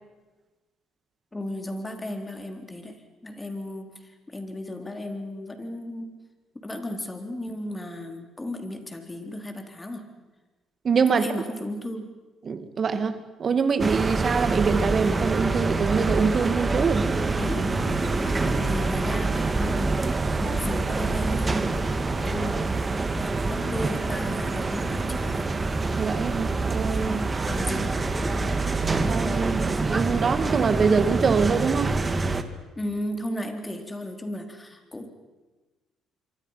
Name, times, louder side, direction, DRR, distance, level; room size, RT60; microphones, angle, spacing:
voice 1, 1.3-4.0 4.3-6.1 6.5-10.1 11.1-12.1 17.3-22.9 23.3-25.5 27.5-28.0 32.8-35.1, left 1 dB, 20° left, 5 dB, 4.0 m, -34 dB
voice 2, 10.8-11.2 12.5-17.2 26.0-27.3 29.1-31.9, right 5 dB, 45° right, 10 dB, 2.3 m, -24 dB
sound 1, 13.8-32.4, right 3 dB, 30° right, 2.1 m, -26 dB
27.0 x 24.0 x 5.9 m, 1.2 s
supercardioid pair, 70°, 0 cm